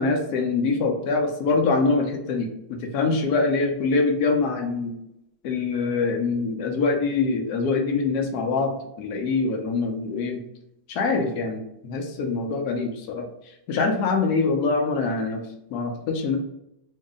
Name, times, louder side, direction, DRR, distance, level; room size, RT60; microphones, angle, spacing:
voice 1, 0.0-4.9 5.4-10.4 10.9-13.2 13.7-15.4 15.7-16.4, left 4 dB, 80° left, 3 dB, 0.8 m, -24 dB
3.1 x 2.7 x 3.6 m, 0.82 s
omnidirectional pair, 2.3 m